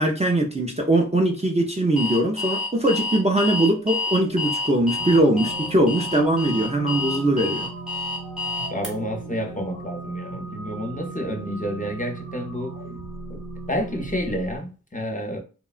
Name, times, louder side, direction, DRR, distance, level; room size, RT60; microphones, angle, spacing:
voice 1, 0.0-7.7, right 1 dB, 20° right, 0.4 m, -21 dB
Alarm, 2.0-8.9, left 3 dB, ahead, 1.0 m, -28 dB
sound 1, 5.0-14.6, right 3 dB, 80° right, 1.0 m, -37 dB
voice 2, 8.7-12.7 13.3-13.4 13.7-15.4, equal, 25° left, 0.6 m, -29 dB
2.8 x 2.2 x 2.4 m
wide cardioid pair, 40°, 32 cm